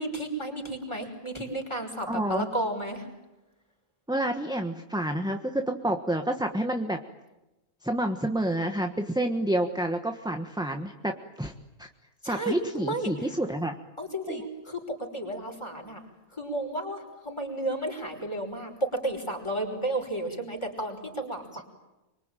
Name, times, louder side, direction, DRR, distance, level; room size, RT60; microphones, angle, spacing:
voice 1, 0.0-3.1 12.2-13.1 14.0-14.8 15.1-16.0 16.3-21.6, right 1 dB, 20° left, 2 dB, 5.8 m, -32 dB
voice 2, 2.1-2.5 4.1-7.0 7.8-11.5 11.8-11.9 12.2-13.8 14.3-14.4, right 1 dB, 5° right, 5 dB, 1.3 m, -29 dB
26.0 x 24.0 x 9.1 m, 0.99 s
omnidirectional pair, 1.3 m